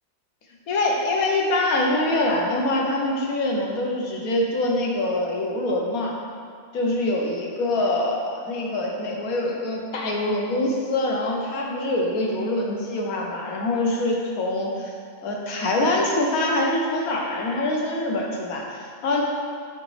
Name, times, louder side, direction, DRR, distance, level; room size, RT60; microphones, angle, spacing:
voice 1, 0.7-6.2 6.7-14.9 15.2-19.2, left 2 dB, 85° left, -1 dB, 1.3 m, -24 dB
8.2 x 3.9 x 3.2 m, 2.2 s
omnidirectional pair, 1.5 m